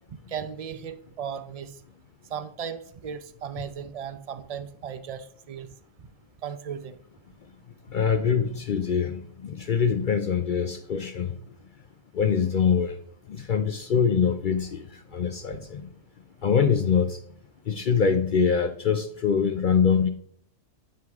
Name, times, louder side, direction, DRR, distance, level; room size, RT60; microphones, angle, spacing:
voice 1, 0.3-1.8 2.3-5.7 6.4-7.0, right 7 dB, 55° right, 11 dB, 0.4 m, -36 dB
voice 2, 7.9-11.3 12.1-13.0 13.3-14.9 15.1-15.9 16.4-17.2 17.7-20.1, left 6 dB, 65° left, 8 dB, 0.5 m, -24 dB
9.3 x 4.7 x 3.5 m, 0.65 s
omnidirectional pair, 1.4 m